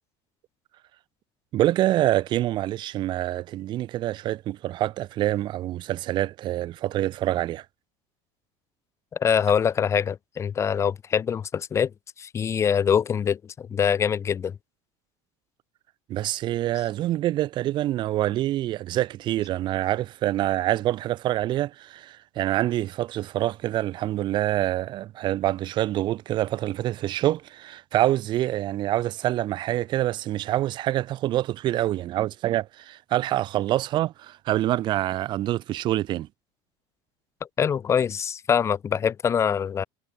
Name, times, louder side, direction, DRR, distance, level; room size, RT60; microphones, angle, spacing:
voice 1, 1.5-7.6 16.1-36.3, right 14 dB, 40° right, 2.1 m, -26 dB
voice 2, 9.2-11.9 12.2-14.6 37.6-39.8, left 7 dB, 25° left, 2.1 m, -24 dB
cardioid pair, 160°, 12 cm